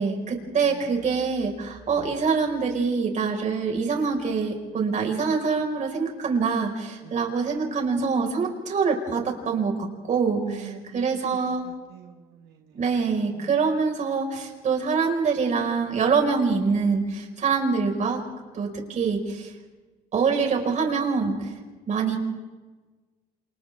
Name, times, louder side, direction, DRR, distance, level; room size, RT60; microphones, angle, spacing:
voice 1, 0.0-9.7 10.1-11.6 12.7-18.2 18.5-19.5 20.1-21.5 21.9-22.2, right 5 dB, 45° right, 1 dB, 5.4 m, -25 dB
voice 2, 0.6-1.2 2.0-2.1 7.0-7.2 10.4-11.1 11.6-12.8 13.3-13.5, right 10 dB, 80° right, 2 dB, 1.8 m, -43 dB
29.0 x 28.0 x 3.7 m, 1.3 s
cardioid pair, 110°, 17 cm